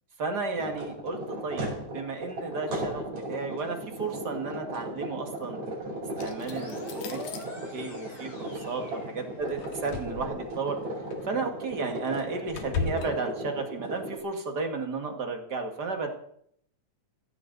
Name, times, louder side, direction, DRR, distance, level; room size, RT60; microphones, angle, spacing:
voice 1, 0.2-1.7 1.9-5.6 6.2-7.2 7.7-9.1 9.4-10.8 11.2-16.1, right 4 dB, 40° right, 4 dB, 2.0 m, -33 dB
sound 1, 0.6-14.2, right 1 dB, 65° right, 5.4 m, -37 dB
sound 2, 6.2-7.4 9.4-10.6 11.1-11.3 11.7-13.1, left 5 dB, 75° left, 2.8 m, -36 dB
sound 3, 6.3-9.8, left 1 dB, 30° left, 4.8 m, -44 dB
16.5 x 15.0 x 4.0 m, 0.66 s
omnidirectional pair, 3.5 m